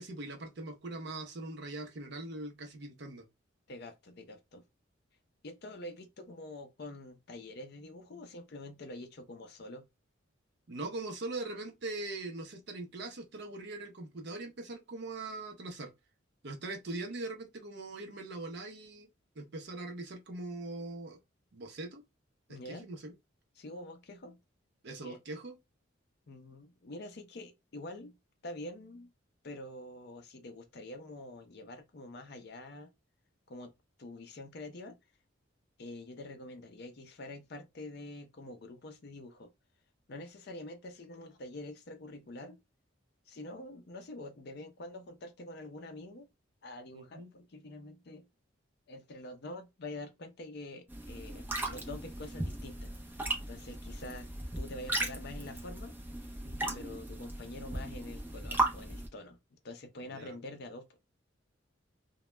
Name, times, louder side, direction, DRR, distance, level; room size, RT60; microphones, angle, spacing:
voice 1, 0.0-3.2 10.7-15.9 16.4-19.1 19.4-21.2 21.5-22.0 22.5-23.1 24.8-25.6 46.9-47.3 56.4-56.8 60.0-60.4, right 2 dB, 55° right, 0.6 m, -41 dB
voice 2, 3.7-4.6 5.4-9.9 22.5-22.9 23.6-24.4 25.0-25.2 26.3-28.2 28.4-29.1 29.4-32.9 33.5-33.7 34.0-35.0 35.8-39.5 40.1-42.6 43.3-46.3 46.6-48.3 48.9-54.3 54.6-55.9 56.7-59.4 59.6-60.9, left 2 dB, 55° left, 0.5 m, -46 dB
sound 1, 50.9-59.1, right 2 dB, 10° right, 0.4 m, -37 dB
2.2 x 2.0 x 3.1 m
head